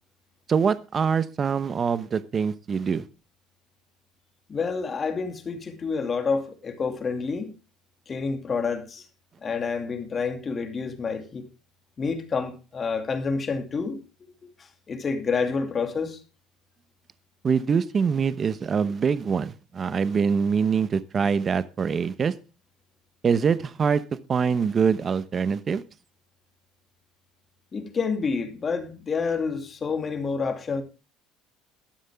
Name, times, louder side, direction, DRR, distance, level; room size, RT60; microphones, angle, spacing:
voice 1, 0.5-3.0 17.4-22.3 23.2-24.0 24.3-25.8, right 6 dB, 35° right, 0.9 m, -24 dB
voice 2, 4.5-7.5 8.1-9.0 9.4-11.5 12.0-14.0 14.4-14.5 14.9-16.2 27.7-30.8, left 5 dB, 30° left, 2.4 m, -28 dB
12.5 x 12.0 x 3.6 m
supercardioid pair, 100°, 0 cm